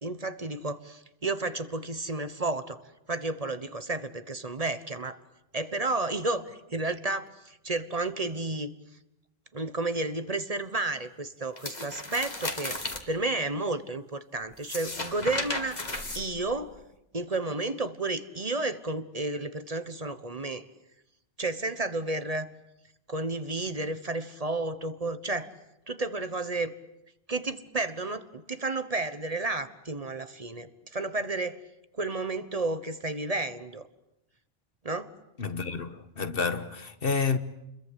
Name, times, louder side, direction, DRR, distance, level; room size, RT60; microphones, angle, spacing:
voice 1, 0.0-2.8 3.1-5.2 5.5-8.7 9.5-15.8 16.1-16.7 17.1-20.6 21.4-22.5 23.1-25.5 25.9-26.7 27.3-31.6 32.0-33.9 34.8-35.1, right 2 dB, 40° right, 1.3 m, -32 dB
sound 1, 11.6-13.0 14.5-16.8, left 2 dB, 45° left, 2.3 m, -35 dB
voice 2, 35.4-37.4, left 5 dB, 65° left, 1.5 m, -29 dB
30.0 x 22.0 x 8.3 m
omnidirectional pair, 1.0 m